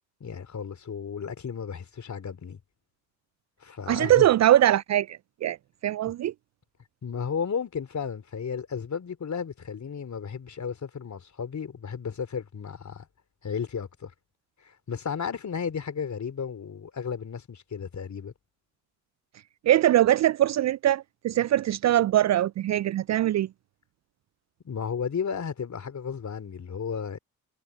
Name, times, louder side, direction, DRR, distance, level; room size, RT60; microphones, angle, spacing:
voice 1, 0.2-2.6 3.6-4.3 7.0-13.1 13.4-14.1 14.6-18.3 24.6-27.2, left 6 dB, 40° left, 3.8 m, -33 dB
voice 2, 3.9-5.6 5.8-6.3 19.6-23.5, right 12 dB, 40° right, 0.5 m, -22 dB
hypercardioid pair, 50°, 41 cm